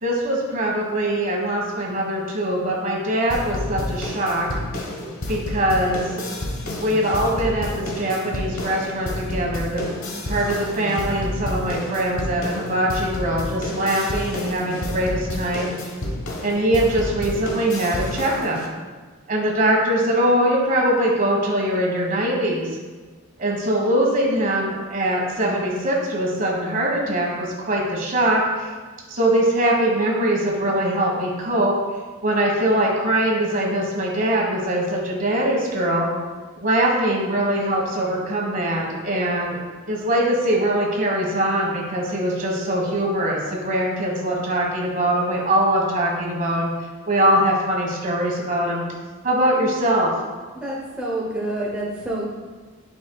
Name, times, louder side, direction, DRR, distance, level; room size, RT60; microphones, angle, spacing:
voice 1, 0.0-4.5 5.3-6.2 6.8-9.8 10.3-15.7 16.4-18.6 19.3-22.7 23.4-28.7 29.1-31.7 32.2-36.1 36.6-39.6 39.9-46.7 47.1-48.8 49.2-50.1, right 1 dB, 40° right, -1 dB, 1.4 m, -22 dB
sound 1, 3.3-18.7, left 1 dB, 75° left, 1.0 m, -30 dB
voice 2, 50.5-52.3, right 1 dB, 5° right, -5 dB, 0.8 m, -28 dB
9.4 x 5.3 x 2.3 m, 1.4 s
head